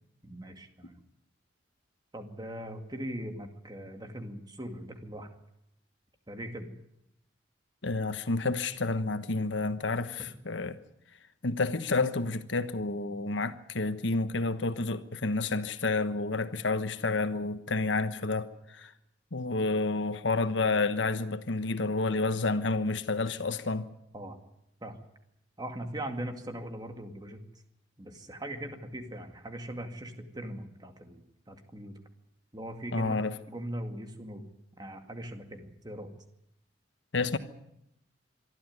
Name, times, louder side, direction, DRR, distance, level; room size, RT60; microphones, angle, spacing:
voice 1, 0.2-1.0 2.1-5.3 6.3-6.7 24.1-24.4 24.8-25.0 25.6-27.4 28.0-32.0 32.5-33.2 33.5-34.4 34.8-36.1, right 1 dB, 20° right, 2.2 m, -40 dB
voice 2, 7.8-10.8 11.4-18.9 19.3-23.9 32.9-33.3 37.1-37.4, left 3 dB, 80° left, 1.2 m, -30 dB
24.5 x 13.0 x 9.5 m
head